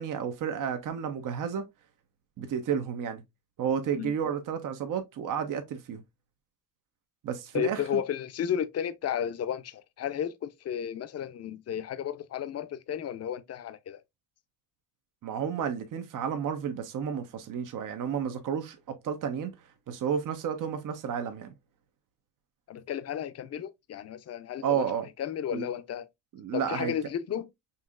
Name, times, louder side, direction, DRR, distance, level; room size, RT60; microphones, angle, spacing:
voice 1, 0.0-1.7 2.4-3.2 3.6-6.0 7.2-7.8 15.2-19.5 19.9-21.5 24.6-25.1 25.5-25.7 26.3-26.9, right 8 dB, 65° right, 0.9 m, -31 dB
voice 2, 7.5-14.0 22.7-24.9 25.2-26.1 26.5-27.5, left 9 dB, 45° left, 0.6 m, -33 dB
5.5 x 2.7 x 2.4 m
cardioid pair, 80°, 34 cm